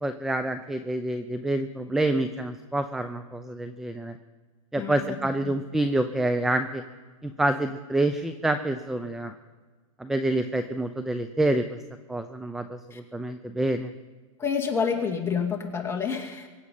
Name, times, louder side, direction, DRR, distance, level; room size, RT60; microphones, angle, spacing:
voice 1, 0.0-4.2 4.7-6.8 7.2-9.3 10.0-11.8 12.1-13.9, right 1 dB, ahead, 9 dB, 0.6 m, -27 dB
voice 2, 4.8-5.2 5.4-5.5 12.9-13.0 14.4-16.5, left 6 dB, 15° left, 0 dB, 2.4 m, -28 dB
23.5 x 8.7 x 5.6 m, 1.4 s
hypercardioid pair, 130°, 18 cm